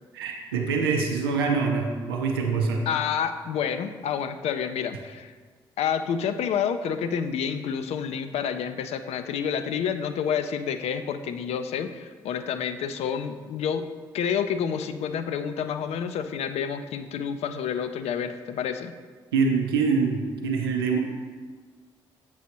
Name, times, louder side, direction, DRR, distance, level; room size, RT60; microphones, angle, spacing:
voice 1, 0.1-2.9 19.3-21.0, right 5 dB, 85° right, 2 dB, 0.5 m, -25 dB
voice 2, 2.9-5.3 5.8-13.9 14.1-18.9, left 7 dB, 60° left, 9 dB, 0.4 m, -29 dB
8.0 x 6.2 x 2.8 m, 1.5 s
hypercardioid pair, 40°, 12 cm